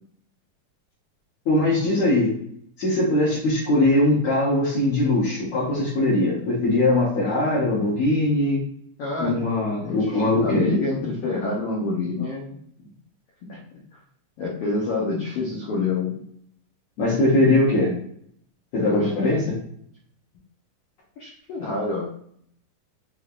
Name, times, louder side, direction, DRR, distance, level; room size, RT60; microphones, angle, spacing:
voice 1, 1.5-2.3 2.8-8.6 9.2-10.7 17.0-17.9 18.7-19.6, left 2 dB, 65° left, -7 dB, 2.2 m, -21 dB
voice 2, 9.0-9.4 9.8-12.6 13.5-13.6 14.4-16.2 18.8-19.1 21.2-22.1, left 3 dB, 80° left, -3 dB, 1.3 m, -27 dB
5.6 x 3.3 x 2.4 m, 0.66 s
omnidirectional pair, 4.1 m